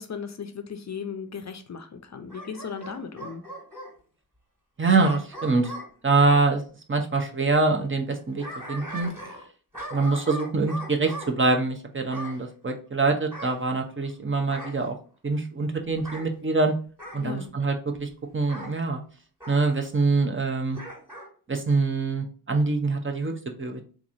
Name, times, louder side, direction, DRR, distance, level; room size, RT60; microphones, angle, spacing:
voice 1, 0.0-3.4 17.2-17.5, left 6 dB, 45° left, 8 dB, 0.5 m, -36 dB
Bark / Growling, 2.3-3.9 5.0-6.5 8.1-9.5 9.7-11.3 12.1-12.4 13.3-14.1 14.5-14.8 15.9-16.3 17.0-17.3 18.5-18.7 19.4-19.6 20.7-21.3 21.7-21.8, equal, 5° right, 1.7 m, -39 dB
voice 2, 4.8-5.7 6.0-6.6 6.9-9.1 9.9-15.0 15.2-16.7 17.1-19.0 19.5-20.8 21.5-23.3 23.6-23.8, right 3 dB, 30° right, 4 dB, 0.7 m, -24 dB
3.6 x 2.9 x 2.6 m, 0.40 s
cardioid pair, 70°, 39 cm